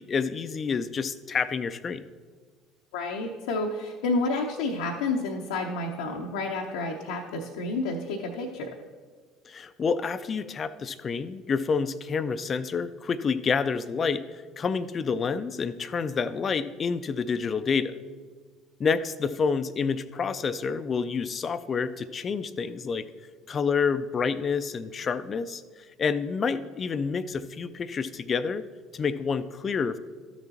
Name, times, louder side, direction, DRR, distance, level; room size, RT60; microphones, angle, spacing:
voice 1, 0.0-2.0 9.5-18.0 18.8-23.1 23.5-25.6 26.0-28.6 28.9-30.0, left 5 dB, 35° left, 13 dB, 0.4 m, -28 dB
voice 2, 2.9-8.7, left 3 dB, 70° left, 1 dB, 0.7 m, -30 dB
12.5 x 6.9 x 2.9 m, 1.5 s
figure-of-eight pair, 60°, 0 cm